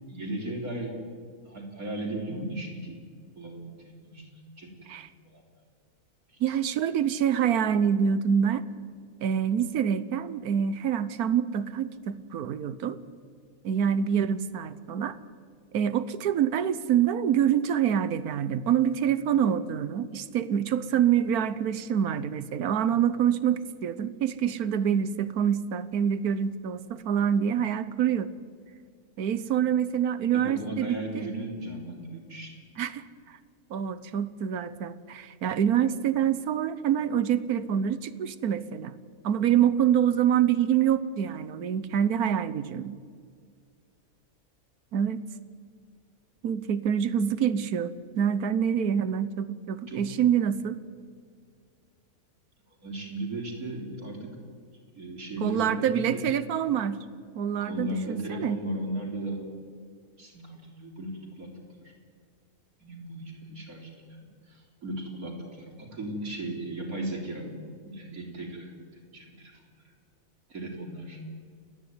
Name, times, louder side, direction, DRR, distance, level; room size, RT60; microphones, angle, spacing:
voice 1, 0.1-1.0 1.4-3.0 3.4-3.7 4.0-4.3 4.6-5.0 5.2-5.4 6.3-6.5 29.5-29.6 30.3-32.5 49.9-50.0 52.8-54.3 55.0-56.2 57.7-59.4 60.2-61.5 61.8-61.9 62.8-67.5 67.8-68.7 69.0-69.5 70.5-71.2, right 1 dB, 75° right, 0 dB, 4.2 m, -36 dB
voice 2, 6.4-8.6 9.2-13.0 13.6-15.2 15.7-28.3 29.2-31.3 32.8-33.0 33.7-38.9 39.2-43.0 44.9-45.2 46.4-50.8 55.4-57.0 57.3-58.6, right 9 dB, 90° right, 15 dB, 1.4 m, -26 dB
29.5 x 10.0 x 9.6 m, 2.1 s
omnidirectional pair, 1.5 m